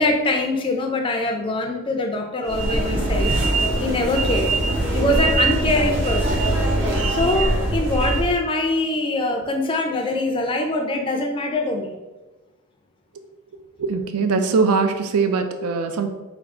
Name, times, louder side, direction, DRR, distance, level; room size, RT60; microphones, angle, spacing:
voice 1, 0.0-3.3 3.8-4.6 4.9-6.4 7.1-11.9, left 2 dB, 25° left, 3 dB, 0.4 m, -23 dB
sound 1, 2.4-8.4, right 2 dB, 55° right, 0.8 m, -22 dB
voice 2, 13.8-16.1, right 4 dB, 80° right, 7 dB, 0.4 m, -21 dB
3.5 x 2.4 x 3.6 m, 1.1 s
head